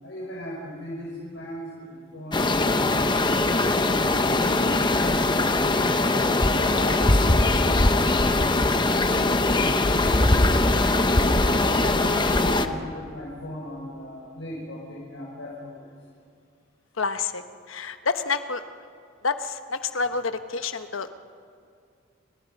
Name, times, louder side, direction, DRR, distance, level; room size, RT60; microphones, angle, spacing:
voice 1, 0.0-3.3 3.8-5.5 5.9-8.9 9.5-11.1 11.6-15.9, left 1 dB, 70° left, -4 dB, 5.5 m, -37 dB
sound 1, 2.3-12.7, left 2 dB, 25° left, 0.9 m, -21 dB
voice 2, 17.0-18.6 19.2-21.1, left 4 dB, 90° left, 9 dB, 1.1 m, -28 dB
29.0 x 24.0 x 5.4 m, 2.3 s
head